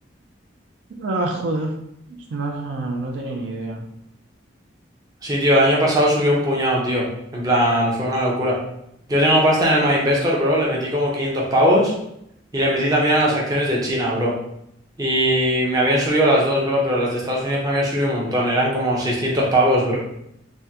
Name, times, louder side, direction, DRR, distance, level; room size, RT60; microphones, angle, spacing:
voice 1, 1.0-1.7 2.3-3.8, right 2 dB, 70° right, 0 dB, 0.4 m, -26 dB
voice 2, 5.2-7.1 7.3-8.6 9.1-11.9 12.5-14.3 15.0-20.0, equal, 20° right, -4 dB, 0.6 m, -19 dB
3.5 x 2.1 x 2.7 m, 0.77 s
head